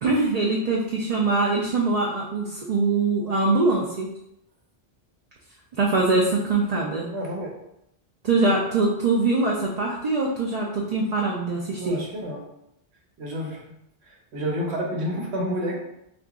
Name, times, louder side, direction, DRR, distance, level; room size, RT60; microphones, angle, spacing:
voice 1, 0.0-4.1 5.8-7.1 8.2-12.0, right 3 dB, 50° right, -3 dB, 0.5 m, -23 dB
voice 2, 7.1-7.5 11.7-12.4 13.2-13.8 14.0-15.8, equal, 85° right, -1 dB, 1.1 m, -29 dB
2.9 x 2.5 x 3.5 m, 0.80 s
omnidirectional pair, 1.1 m